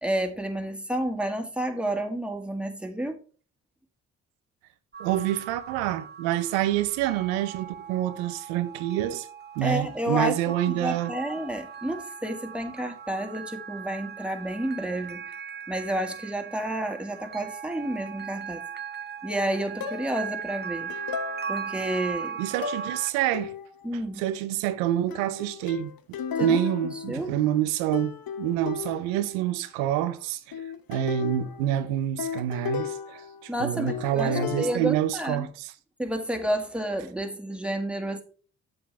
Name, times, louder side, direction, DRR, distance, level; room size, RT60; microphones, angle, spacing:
voice 1, 0.0-3.2 9.6-10.4 10.7-15.3 15.7-18.6 19.2-20.9 21.5-22.4 23.8-24.2 26.4-26.6 27.1-27.3 33.5-35.5 36.0-38.2, right 1 dB, 5° right, 2.0 m, -30 dB
sound 1, 4.9-23.1, right 7 dB, 25° right, 0.6 m, -39 dB
voice 2, 5.0-9.3 9.6-11.1 22.4-23.5 24.2-30.4 30.9-35.7, right 12 dB, 90° right, 0.7 m, -27 dB
sound 2, 19.8-20.3 20.9-21.9 22.6-23.0 23.3-23.9 25.1-27.7 27.9-29.3 30.5-33.6 33.9-34.8, left 7 dB, 60° left, 1.0 m, -35 dB
7.9 x 7.8 x 3.4 m
hypercardioid pair, 40°, 40 cm